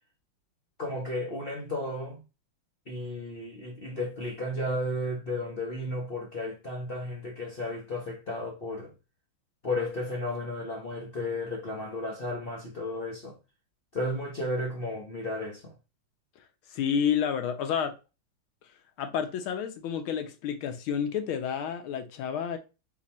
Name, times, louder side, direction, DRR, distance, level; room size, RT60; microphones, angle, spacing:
voice 1, 0.8-2.2 2.9-8.9 9.6-13.4 13.9-15.7, left 1 dB, 50° left, 0.7 m, -33 dB
voice 2, 16.7-17.9 19.0-22.6, left 8 dB, 80° left, 1.6 m, -30 dB
4.1 x 2.8 x 4.1 m
omnidirectional pair, 2.3 m